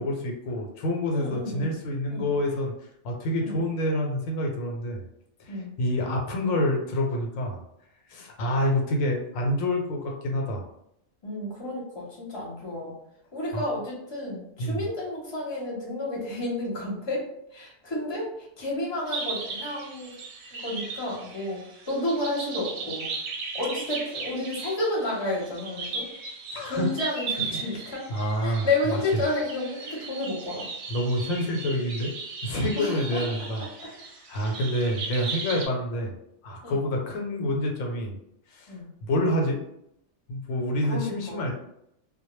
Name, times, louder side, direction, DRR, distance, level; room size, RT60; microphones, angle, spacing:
voice 1, 0.0-2.7 3.0-5.0 5.4-7.6 8.1-10.6 13.5-13.7 14.6-14.8 26.5-26.9 27.5-27.8 28.1-29.0 30.9-32.1 32.4-34.0 34.3-36.1 36.4-38.1 38.5-38.7 39.0-39.6 40.3-41.5, left 1 dB, 85° left, 1 dB, 1.0 m, -27 dB
voice 2, 1.1-1.8 2.1-2.3 3.4-3.5 5.5-5.8 11.2-12.9 13.3-17.3 17.5-20.1 20.5-23.1 23.5-26.1 26.6-28.0 28.4-30.7 32.8-33.2 35.1-35.2 36.6-36.9 38.7-38.9 40.8-41.5, left 2 dB, 25° left, -4 dB, 0.7 m, -31 dB
sound 1, 19.1-35.7, right 4 dB, 65° right, 0.7 m, -37 dB
2.1 x 2.1 x 3.0 m, 0.76 s
omnidirectional pair, 1.4 m